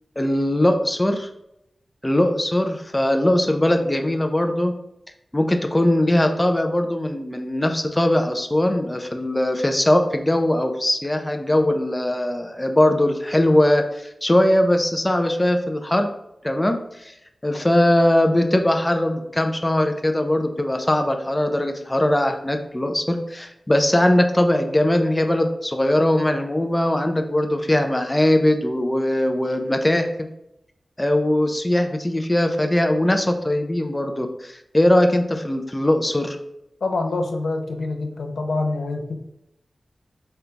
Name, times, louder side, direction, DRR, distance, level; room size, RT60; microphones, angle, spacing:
voice 1, 0.2-1.3 2.0-4.7 5.3-16.1 16.4-17.1 17.4-30.1 31.0-36.4, left 1 dB, 15° left, 5 dB, 0.4 m, -20 dB
voice 2, 36.8-39.2, left 2 dB, 85° left, 4 dB, 0.5 m, -25 dB
3.8 x 2.2 x 4.3 m, 0.84 s
wide cardioid pair, 100°, 0 cm